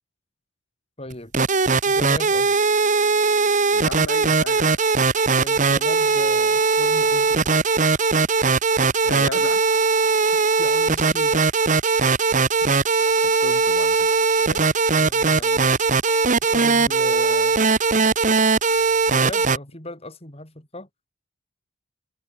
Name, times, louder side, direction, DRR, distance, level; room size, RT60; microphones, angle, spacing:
voice 1, 1.0-1.3 1.8-2.6 5.3-7.6 10.3-11.5 11.8-12.0 15.0-15.8 16.5-17.6 19.1-20.9, left 1 dB, 30° left, 5.8 m, -37 dB
sound 1, 1.1-19.6, right 4 dB, 40° right, 1.2 m, -19 dB
voice 2, 3.7-4.8 9.0-9.6 13.2-14.1 14.4-14.8, left 3 dB, 65° left, 2.3 m, -34 dB
head